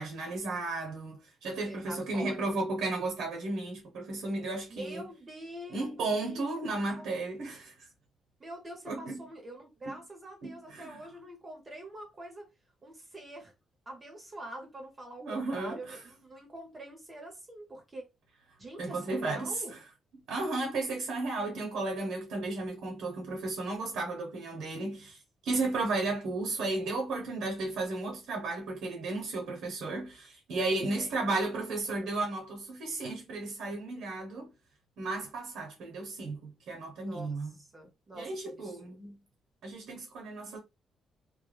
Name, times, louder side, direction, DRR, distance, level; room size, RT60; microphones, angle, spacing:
voice 1, 0.0-5.0 5.7-7.9 8.9-9.3 9.8-9.9 10.4-11.0 15.2-16.0 18.8-19.6 20.3-34.5 35.0-37.5 38.1-39.2 39.6-40.6, right 2 dB, 80° right, 0.7 m, -34 dB
voice 2, 1.4-2.6 4.7-7.2 8.4-12.5 12.8-13.5 13.9-18.0 18.6-19.8 30.7-31.3 37.0-39.1, right 1 dB, 30° right, 0.8 m, -45 dB
2.1 x 2.1 x 3.2 m
cardioid pair, 90°, 0 cm